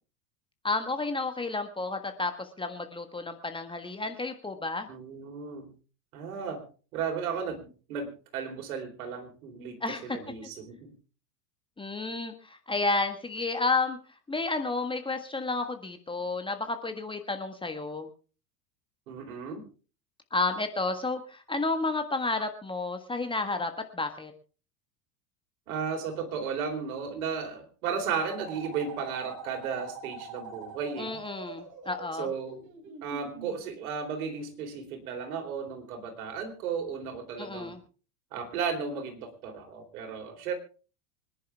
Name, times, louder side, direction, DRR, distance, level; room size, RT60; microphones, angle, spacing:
voice 1, 0.6-4.9 9.8-10.2 11.8-14.0 14.3-18.1 20.3-24.3 31.0-32.3 37.4-37.8, left 3 dB, 10° left, 7 dB, 1.5 m, -31 dB
voice 2, 4.9-5.7 6.1-6.6 6.9-10.9 19.1-19.7 25.7-31.2 32.2-32.6 33.0-37.8 38.3-40.5, right 6 dB, 60° right, 5 dB, 4.2 m, -34 dB
sound 1, 28.1-33.6, right 5 dB, 40° right, 3.7 m, -44 dB
25.5 x 10.5 x 3.5 m, 0.37 s
figure-of-eight pair, 80°, 48 cm